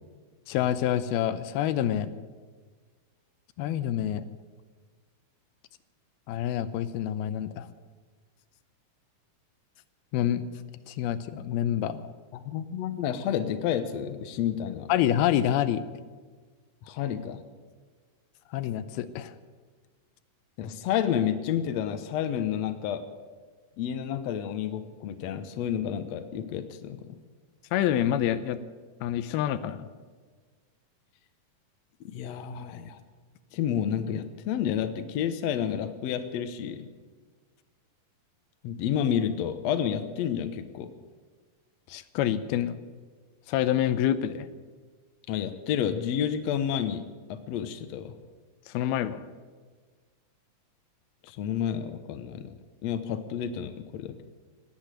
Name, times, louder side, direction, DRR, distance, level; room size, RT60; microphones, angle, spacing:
voice 1, 0.5-2.1 3.6-4.3 6.3-7.7 10.1-10.4 10.9-12.1 14.9-15.9 18.5-19.3 27.7-28.6 29.0-29.9 41.9-42.8 43.5-44.5 48.7-49.3, left 11 dB, 90° left, 12 dB, 2.7 m, -27 dB
voice 2, 12.3-14.9 16.8-17.4 20.6-23.0 23.8-27.1 32.1-33.0 33.5-36.9 38.6-40.9 45.3-47.0 47.3-48.2 51.2-52.5 52.8-54.2, left 9 dB, 70° left, 9 dB, 1.7 m, -30 dB
18.0 x 8.5 x 9.1 m, 1.5 s
omnidirectional pair, 4.2 m